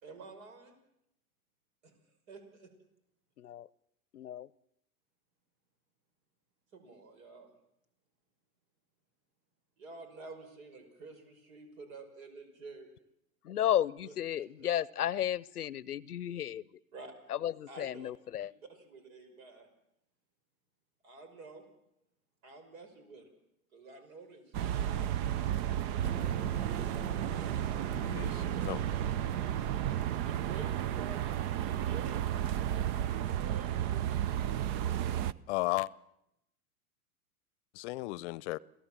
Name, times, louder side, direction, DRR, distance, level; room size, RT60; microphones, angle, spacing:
voice 1, 0.0-0.8 1.8-1.9 2.3-2.7 6.7-7.5 9.8-12.9 14.0-14.4 16.9-17.1 17.7-18.1 18.4-19.7 21.0-21.6 22.4-23.3 23.7-25.4 28.9-29.0 29.3-29.5 29.7-29.8 30.3-32.3 33.4-34.0, right 3 dB, 65° right, 5.7 m, -50 dB
voice 2, 3.4-3.7 4.1-4.5 13.4-16.7 17.3-18.5, left 11 dB, 90° left, 0.8 m, -33 dB
sound 1, 24.5-35.3, right 11 dB, 45° right, 0.8 m, -33 dB
Fire, 25.9-31.2, right 6 dB, 85° right, 1.1 m, -42 dB
voice 3, 28.0-28.8 35.5-35.9 37.7-38.6, left 20 dB, 50° left, 0.8 m, -34 dB
27.5 x 17.5 x 7.5 m
hypercardioid pair, 105°, 44 cm